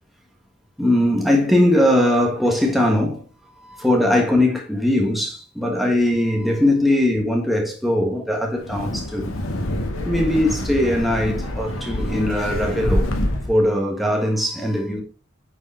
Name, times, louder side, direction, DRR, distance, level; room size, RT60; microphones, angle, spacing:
voice 1, 0.8-3.2 3.6-9.3 10.0-13.1 13.5-15.0, left 1 dB, ahead, 1.5 m, -20 dB
Wind, 8.6-13.6, left 1 dB, 85° left, 1.8 m, -26 dB
9.8 x 4.9 x 4.3 m
head